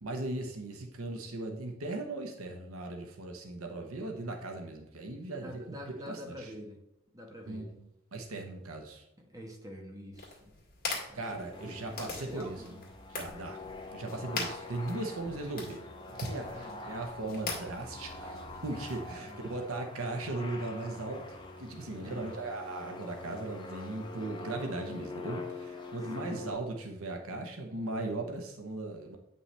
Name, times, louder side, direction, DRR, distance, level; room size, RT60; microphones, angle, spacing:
voice 1, 0.0-5.8 6.1-6.5 7.5-7.6 8.1-9.0 11.1-12.7 13.1-13.6 13.9-29.2, right 2 dB, 80° right, 3 dB, 1.0 m, -38 dB
voice 2, 5.4-6.8 7.1-7.7 9.2-10.5 10.9-12.8 15.2-15.5 16.5-16.8 19.2-19.4 22.0-22.3 25.9-26.4, equal, 15° right, 1 dB, 1.2 m, -47 dB
sound 1, 10.1-19.1, left 3 dB, 45° left, 2.0 m, -43 dB
sound 2, 11.5-26.5, left 2 dB, 20° left, 0.9 m, -45 dB
sound 3, 13.3-13.4 13.7-13.8 14.1-14.5 14.9-15.0 15.3-15.4 15.7-16.1 16.5-18.6 18.9-19.3, left 2 dB, 65° left, 0.9 m, -57 dB
8.7 x 5.5 x 3.3 m, 0.85 s
head